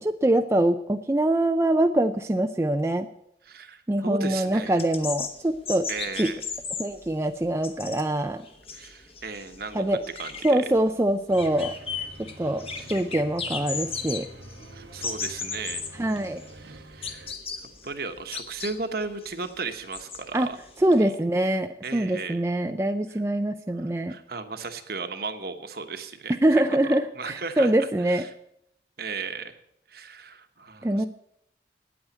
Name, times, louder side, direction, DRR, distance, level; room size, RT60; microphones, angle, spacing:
voice 1, 0.0-3.1 3.9-5.9 6.2-6.3 6.8-8.4 9.7-10.0 10.4-11.7 12.2-12.6 12.9-14.3 16.0-16.4 20.3-20.5 20.8-24.1 26.4-28.3 30.8-31.1, right 1 dB, 15° right, 6 dB, 0.4 m, -24 dB
voice 2, 3.4-4.8 5.9-6.4 8.7-10.6 12.7-12.9 14.7-15.9 16.6-17.3 17.8-20.6 21.0-21.2 21.8-22.5 23.8-28.3 29.0-29.5 29.9-31.1, right 4 dB, 55° right, 7 dB, 1.2 m, -36 dB
sound 1, 4.6-20.9, left 5 dB, 30° left, 1.1 m, -36 dB
sound 2, 11.3-17.3, right 1 dB, 85° right, 1.3 m, -46 dB
9.4 x 8.8 x 9.2 m, 0.78 s
head